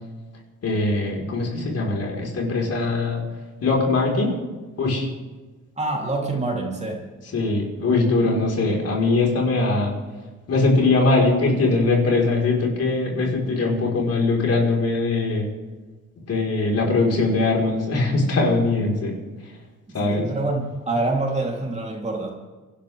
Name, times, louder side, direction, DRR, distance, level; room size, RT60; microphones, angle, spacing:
voice 1, 0.6-3.2 3.6-4.4 4.8-5.1 7.3-9.9 10.5-15.5 16.3-19.2 19.9-20.3, left 3 dB, 55° left, -1 dB, 4.8 m, -21 dB
voice 2, 5.8-7.1 19.9-22.3, right 2 dB, 20° right, -1 dB, 3.6 m, -26 dB
28.0 x 12.0 x 3.6 m, 1.3 s
cardioid pair, 90°, 30 cm